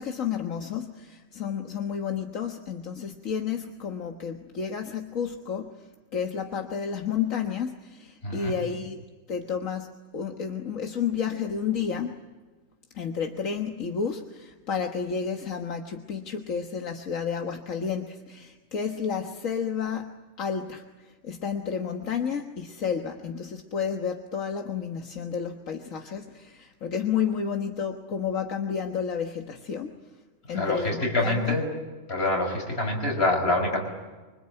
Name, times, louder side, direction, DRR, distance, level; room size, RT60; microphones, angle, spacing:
voice 1, 0.0-12.2 12.9-30.0 30.5-31.6, left 7 dB, 80° left, 4 dB, 1.8 m, -31 dB
voice 2, 8.2-8.5 30.5-31.6 32.1-33.8, left 2 dB, 50° left, 1 dB, 6.5 m, -26 dB
25.5 x 25.0 x 8.9 m, 1.3 s
omnidirectional pair, 1.4 m